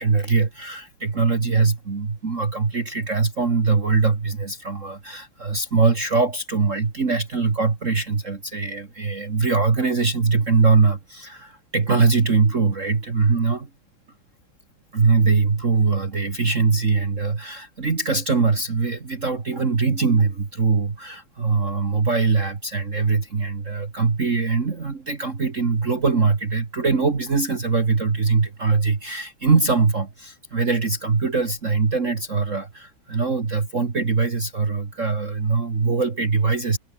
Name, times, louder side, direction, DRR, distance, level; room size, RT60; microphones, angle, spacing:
voice 1, 0.0-13.7 14.9-36.8, right 4 dB, 35° right, 2.2 m, -22 dB
omnidirectional pair, 2.4 m